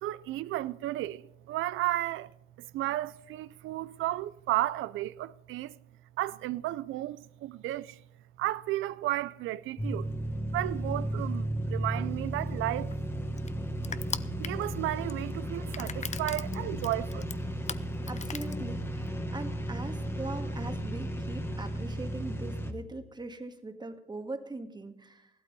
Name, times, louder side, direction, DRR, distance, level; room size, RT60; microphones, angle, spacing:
voice 1, 0.0-2.3 2.6-5.8 6.2-8.0 8.4-10.1 10.5-12.9 14.4-17.3, right 15 dB, 85° right, 0.5 m, -33 dB
sound 1, 9.8-22.7, right 1 dB, 10° left, 1.5 m, -34 dB
Crushing, 12.3-19.1, left 7 dB, 35° left, 0.6 m, -41 dB
voice 2, 18.1-25.3, right 2 dB, 20° right, 1.7 m, -41 dB
15.0 x 12.5 x 5.3 m
cardioid pair, 90°, 20 cm